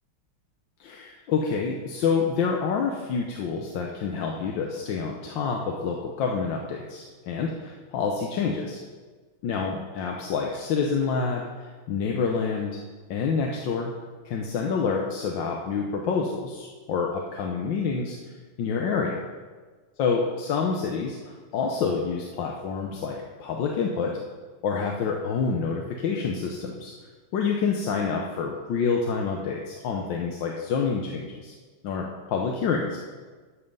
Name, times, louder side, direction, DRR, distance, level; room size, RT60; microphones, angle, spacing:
voice 1, 0.8-8.8 9.4-12.8 13.1-13.9 14.2-18.2 18.6-19.2 20.0-24.1 24.6-26.9 27.3-31.5 31.8-33.0, left 5 dB, 70° left, 0 dB, 1.5 m, -27 dB
13.0 x 5.6 x 5.4 m, 1.4 s
omnidirectional pair, 2.3 m